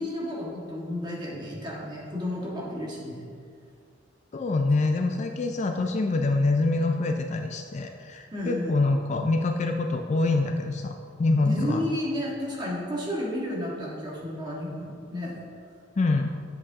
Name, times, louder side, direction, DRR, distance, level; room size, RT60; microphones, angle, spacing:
voice 1, 0.0-3.3 8.3-8.8 11.4-15.3, left 1 dB, 20° right, -5 dB, 1.7 m, -32 dB
voice 2, 4.3-10.9 11.2-11.8 16.0-16.3, left 3 dB, 35° left, 4 dB, 0.4 m, -25 dB
8.5 x 7.6 x 2.8 m, 2.2 s
head